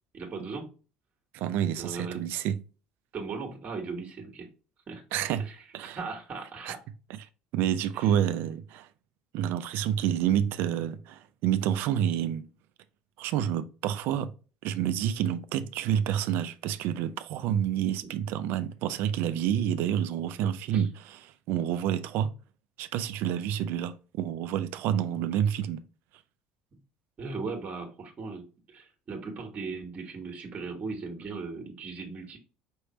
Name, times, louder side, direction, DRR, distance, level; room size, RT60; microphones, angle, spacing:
voice 1, 0.1-0.7 1.8-2.2 3.1-4.5 4.9-5.0 5.4-5.5 5.9-6.8 7.9-8.4 10.3-10.4 18.0-18.1 20.3-20.9 26.7-26.8 27.2-32.4, right 4 dB, 35° right, 1.5 m, -38 dB
voice 2, 1.3-2.6 5.1-5.5 5.7-6.0 6.7-6.8 7.5-8.9 9.3-12.4 13.2-14.3 14.6-22.3 22.8-25.8, right 10 dB, 60° right, 0.5 m, -28 dB
5.3 x 3.2 x 3.0 m
figure-of-eight pair, 65°, 4 cm